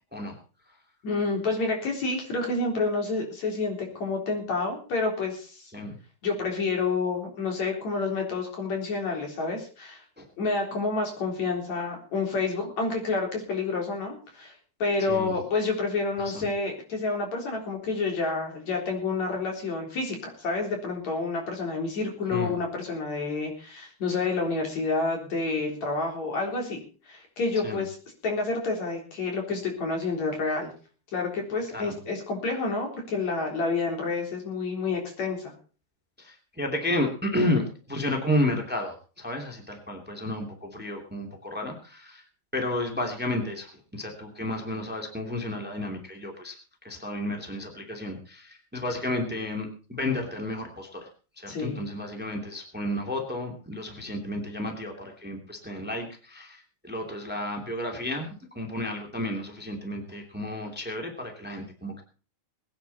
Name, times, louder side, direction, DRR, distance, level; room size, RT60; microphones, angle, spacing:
voice 1, 1.0-5.7 6.2-10.0 10.4-14.5 14.8-26.8 27.1-28.0 28.2-30.7 31.1-35.5 51.5-51.8, left 3 dB, 60° left, 1 dB, 5.0 m, -29 dB
voice 2, 15.0-15.3 16.2-16.5 22.3-22.5 27.6-27.8 31.7-32.0 36.2-42.2 42.5-46.6 46.8-51.1 51.4-62.0, left 1 dB, 5° right, 3 dB, 2.2 m, -32 dB
21.5 x 9.6 x 4.2 m, 0.37 s
omnidirectional pair, 3.6 m